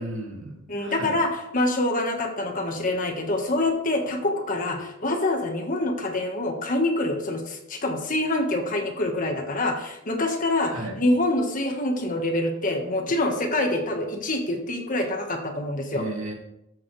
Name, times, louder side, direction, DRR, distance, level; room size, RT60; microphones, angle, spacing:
voice 1, 0.0-1.2 10.7-11.0 15.8-16.3, right 2 dB, 70° right, 0 dB, 2.6 m, -34 dB
voice 2, 0.7-16.0, left 2 dB, 40° left, 3 dB, 1.5 m, -26 dB
13.5 x 7.6 x 3.3 m, 0.84 s
head